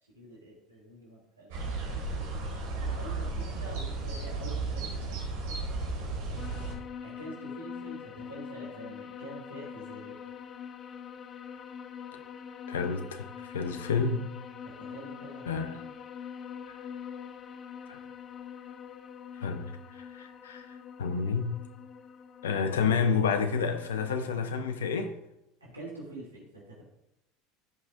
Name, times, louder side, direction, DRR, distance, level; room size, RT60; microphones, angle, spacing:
voice 1, 0.1-1.6 2.5-5.2 7.0-10.1 14.6-15.6 25.6-26.8, right 1 dB, 90° right, 2.8 m, -46 dB
sound 1, 1.5-6.8, right 3 dB, 65° right, 2.2 m, -34 dB
sound 2, 6.4-24.1, left 7 dB, 40° left, 0.7 m, -44 dB
voice 2, 12.7-14.3 15.5-15.8 17.9-18.0 19.4-20.6 21.0-21.6 22.4-25.1, left 5 dB, 75° left, 0.9 m, -29 dB
14.5 x 5.6 x 2.6 m
figure-of-eight pair, 75°, 0 cm